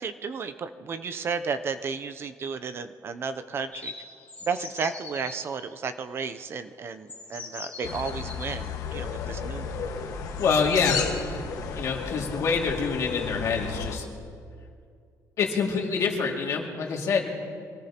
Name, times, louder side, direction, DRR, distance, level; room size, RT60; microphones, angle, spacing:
voice 1, 0.0-3.9 4.4-9.7, right 5 dB, 40° right, 10 dB, 0.5 m, -33 dB
sound 1, 3.7-5.4 6.4-6.5 7.1-8.6, left 4 dB, 25° left, 2.2 m, -41 dB
sound 2, 7.8-14.0, left 5 dB, 70° left, 1.4 m, -33 dB
voice 2, 10.4-11.0 11.7-14.0 15.4-17.4, left 5 dB, 55° left, 0 dB, 2.2 m, -26 dB
24.5 x 18.0 x 2.9 m, 2.3 s
cardioid pair, 165°, 6 cm